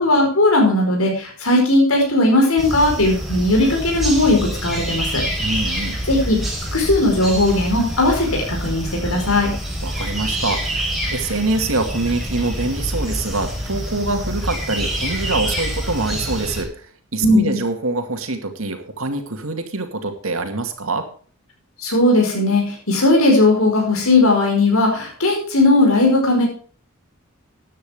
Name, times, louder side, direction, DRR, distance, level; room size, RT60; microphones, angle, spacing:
voice 1, 0.0-5.2 6.1-6.4 6.7-9.5 17.2-17.6 21.8-26.4, left 2 dB, 80° left, 1 dB, 4.9 m, -17 dB
sound 1, 2.6-16.6, equal, ahead, 4.3 m, -26 dB
voice 2, 5.4-6.0 9.8-16.9 17.1-21.1, right 2 dB, 75° right, 6 dB, 2.3 m, -25 dB
13.5 x 10.0 x 3.6 m, 0.42 s
head